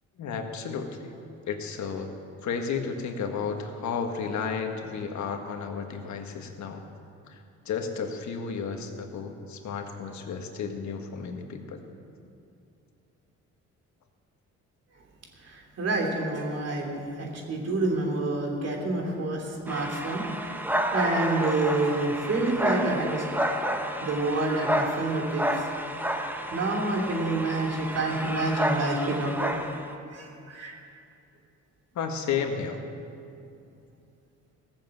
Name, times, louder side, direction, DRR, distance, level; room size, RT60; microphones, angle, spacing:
voice 1, 0.2-1.1 1.5-2.1 2.4-6.8 7.3-7.4 7.6-11.8 31.9-32.8, left 6 dB, 70° left, 4 dB, 1.5 m, -32 dB
voice 2, 15.5-20.2 20.9-23.2 24.0-25.5 26.5-29.5 30.1-30.7, right 2 dB, 55° right, 0 dB, 2.9 m, -28 dB
sound 1, 19.7-29.9, equal, 5° right, 1.1 m, -30 dB
16.5 x 7.4 x 7.9 m, 2.6 s
cardioid pair, 90°, 30 cm